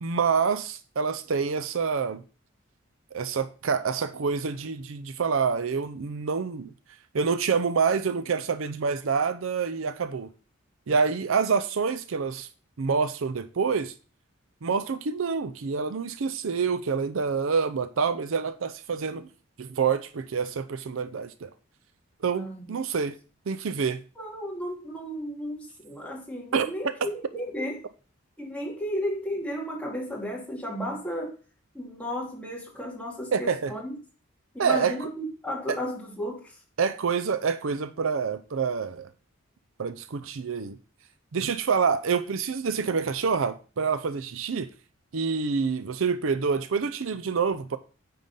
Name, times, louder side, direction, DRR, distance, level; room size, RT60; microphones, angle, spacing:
voice 1, 0.0-2.2 3.1-6.7 7.1-10.3 10.9-12.5 12.8-13.9 14.6-19.3 19.6-21.5 22.2-23.1 23.5-24.0 26.5-26.9 33.3-33.7 34.6-35.1 36.8-39.1 39.8-40.8 41.3-44.7 45.1-47.8, right 5 dB, 65° right, 0.5 m, -27 dB
voice 2, 22.3-22.8 24.2-27.8 28.4-31.3 31.7-33.9 34.5-36.6, equal, 5° left, 2.4 m, -34 dB
9.2 x 3.8 x 5.5 m
head